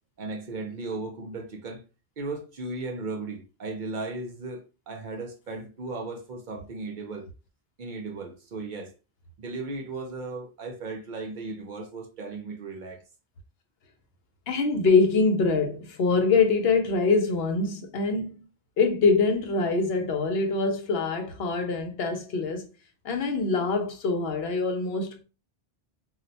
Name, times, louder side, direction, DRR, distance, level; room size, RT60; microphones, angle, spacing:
voice 1, 0.2-1.8 2.2-7.3 7.8-8.9 9.4-13.0 14.5-14.7, right 3 dB, 55° right, 0.6 m, -36 dB
voice 2, 14.5-18.3 18.8-22.7 23.0-25.2, left 4 dB, 75° left, 0.9 m, -24 dB
2.3 x 2.1 x 3.9 m
omnidirectional pair, 1.1 m